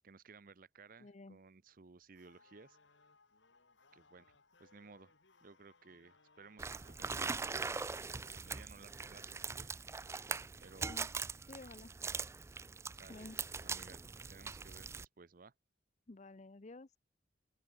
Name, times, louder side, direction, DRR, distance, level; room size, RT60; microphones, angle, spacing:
voice 1, 0.0-2.8 3.9-4.3 4.6-5.1 5.4-7.4 8.2-9.7 10.6-11.0 12.1-12.3 13.0-13.3 13.6-15.5, right 4 dB, 50° right, 0.7 m, -58 dB
voice 2, 1.0-1.4 10.8-11.1 11.5-11.9 13.1-13.4 16.1-17.0, left 2 dB, 40° left, 0.7 m, -52 dB
sound 1, 1.9-7.2, left 3 dB, 80° left, 3.4 m, -68 dB
sound 2, 6.6-15.0, right 4 dB, 15° right, 0.3 m, -42 dB
open air
head